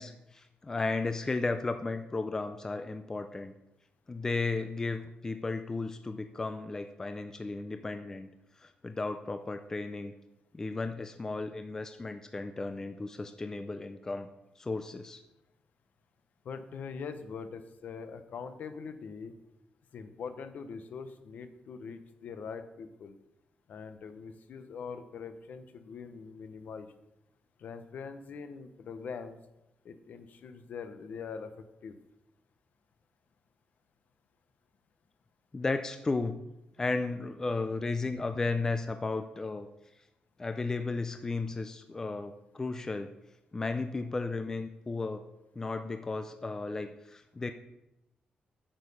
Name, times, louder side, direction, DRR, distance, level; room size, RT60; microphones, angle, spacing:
voice 1, 0.0-3.5 4.1-8.3 8.6-10.1 10.5-14.3 14.6-15.2 35.5-36.4 36.8-39.7 40.4-43.1 43.5-45.2 45.6-47.5, left 3 dB, 15° left, 8 dB, 0.4 m, -34 dB
voice 2, 16.4-19.3 19.9-23.2 23.7-26.9 27.6-29.4 29.8-32.0, left 5 dB, 60° left, 9 dB, 0.8 m, -43 dB
8.9 x 6.6 x 5.4 m, 0.90 s
wide cardioid pair, 165°, 3 cm